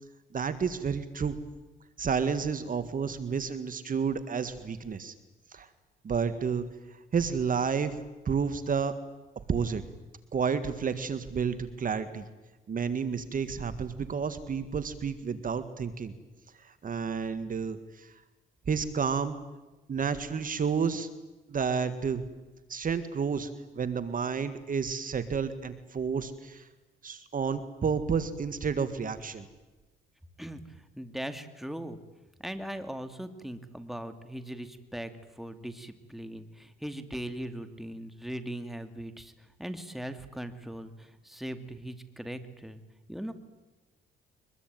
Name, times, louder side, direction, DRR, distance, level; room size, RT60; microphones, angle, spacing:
voice 1, 0.3-1.4 2.0-5.1 5.5-5.7 6.0-8.0 8.3-8.9 9.5-9.8 10.3-12.3 12.7-16.1 16.6-18.1 18.7-19.4 19.9-21.1 21.5-22.2 22.7-23.5 23.7-26.7 27.0-29.5, right 6 dB, 45° right, 11 dB, 1.8 m, -30 dB
voice 2, 30.4-32.0 32.4-42.8 43.1-43.3, right 1 dB, ahead, 9 dB, 2.5 m, -39 dB
23.5 x 21.5 x 9.2 m, 1.2 s
cardioid pair, 90°, 20 cm